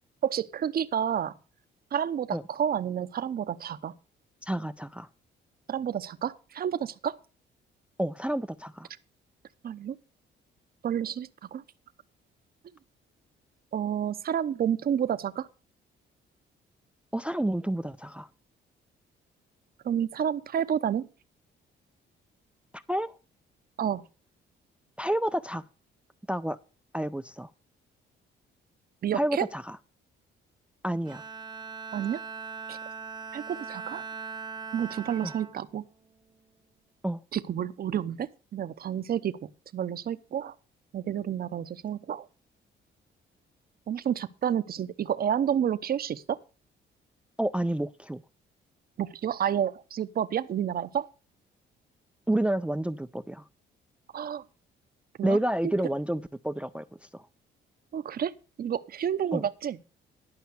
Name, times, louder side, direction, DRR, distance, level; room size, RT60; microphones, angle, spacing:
voice 1, 0.2-1.3 1.9-3.9 5.7-7.2 9.6-10.0 10.8-11.6 13.7-15.5 19.8-21.1 23.8-24.0 29.0-29.4 31.9-32.2 32.7-32.8 33.3-34.0 34.7-35.8 37.3-40.5 40.9-42.3 43.9-46.4 49.0-51.1 54.1-54.4 55.2-55.4 57.9-58.3 58.6-59.8, right 9 dB, 50° right, 0.7 m, -30 dB
voice 2, 4.4-5.1 8.0-8.9 17.1-18.3 22.7-23.1 25.0-25.6 26.3-26.6 26.9-27.5 29.1-29.8 30.8-31.2 35.2-35.3 37.0-37.2 47.4-48.2 52.3-53.4 55.2-56.8 57.1-57.2 59.3-59.4, right 1 dB, 5° right, 0.4 m, -29 dB
Bowed string instrument, 31.1-36.6, right 5 dB, 20° right, 0.9 m, -41 dB
11.5 x 5.7 x 6.6 m
cardioid pair, 90°, 20 cm